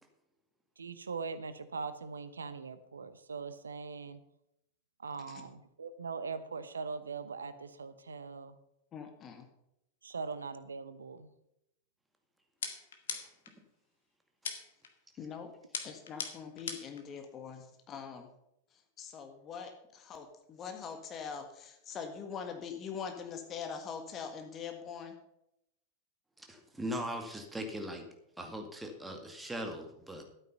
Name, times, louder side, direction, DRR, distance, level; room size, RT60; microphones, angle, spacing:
voice 1, 0.8-4.2 5.0-8.6 10.0-11.3, right 5 dB, 75° right, 12 dB, 0.9 m, -41 dB
voice 2, 8.9-9.5 15.2-15.5 15.8-18.3 19.0-25.1, left 6 dB, 30° left, 5 dB, 1.7 m, -43 dB
sound 1, 12.6-13.5 14.4-14.9 15.7-17.0, left 6 dB, 65° left, 1.8 m, -40 dB
voice 3, 26.4-28.1 28.4-30.2, equal, 5° right, 4 dB, 2.2 m, -39 dB
12.5 x 9.1 x 5.6 m, 0.81 s
figure-of-eight pair, 90°, 0 cm